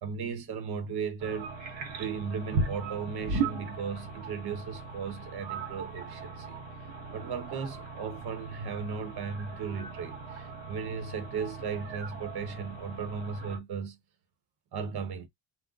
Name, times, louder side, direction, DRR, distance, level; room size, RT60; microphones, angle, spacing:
voice 1, 0.0-1.6 2.0-6.6 7.1-14.0 14.7-15.3, right 6 dB, 60° right, 0.9 m, -36 dB
sound 1, 1.2-13.6, right 4 dB, 90° right, 1.0 m, -38 dB
2.4 x 2.1 x 3.7 m
cardioid pair, 130°, 44 cm